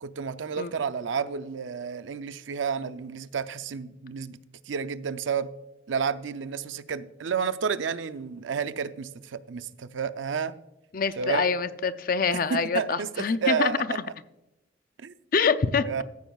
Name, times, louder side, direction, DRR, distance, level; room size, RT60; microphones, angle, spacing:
voice 1, 0.0-4.4 4.7-5.5 5.9-10.5 11.2-11.5 12.3-14.0 15.0-15.1 15.8-16.0, right 6 dB, 90° right, 0.5 m, -31 dB
voice 2, 10.9-13.7 15.3-15.9, left 5 dB, 50° left, 0.5 m, -25 dB
14.0 x 9.1 x 2.4 m
head